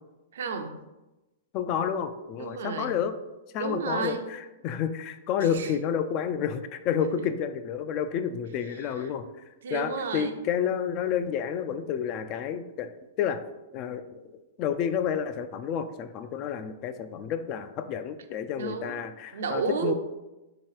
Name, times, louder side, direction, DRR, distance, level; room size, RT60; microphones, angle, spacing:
voice 1, 0.3-0.8 2.4-3.0 3.6-4.2 5.4-5.8 7.1-7.2 8.7-9.1 9.6-10.4 18.6-19.0 19.3-19.9, right 5 dB, 75° right, 7 dB, 0.5 m, -32 dB
voice 2, 1.5-3.1 3.5-9.2 9.7-12.9 13.2-13.4 13.7-19.9, left 8 dB, 35° left, 10 dB, 0.3 m, -30 dB
3.2 x 2.9 x 4.7 m, 1.0 s
hypercardioid pair, 150°, 0 cm